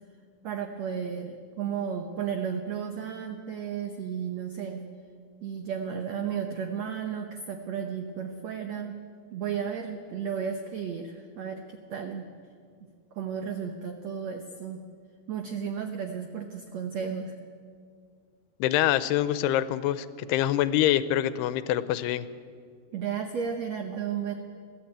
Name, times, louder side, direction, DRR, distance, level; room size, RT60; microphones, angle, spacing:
voice 1, 0.4-4.8 5.4-8.9 9.3-11.6 11.9-12.2 13.1-14.8 15.3-17.4 22.9-24.3, right 7 dB, 85° right, 5 dB, 1.5 m, -33 dB
voice 2, 18.6-22.3, left 12 dB, 85° left, 14 dB, 2.7 m, -25 dB
22.5 x 15.0 x 8.9 m, 2.1 s
omnidirectional pair, 4.7 m